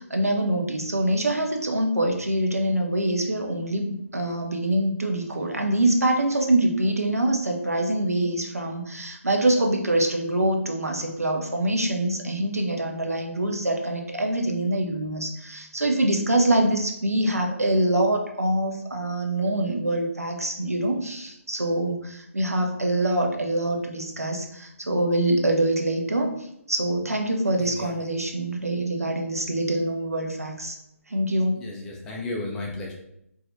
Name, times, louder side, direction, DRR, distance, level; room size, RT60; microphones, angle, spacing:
voice 1, 0.0-26.3 26.7-30.8 31.1-31.6, right 1 dB, 80° right, 2 dB, 0.6 m, -25 dB
voice 2, 27.6-27.9 31.6-32.9, left 2 dB, 10° left, -2 dB, 0.3 m, -34 dB
4.1 x 2.4 x 2.6 m, 0.78 s
figure-of-eight pair, 145°, 8 cm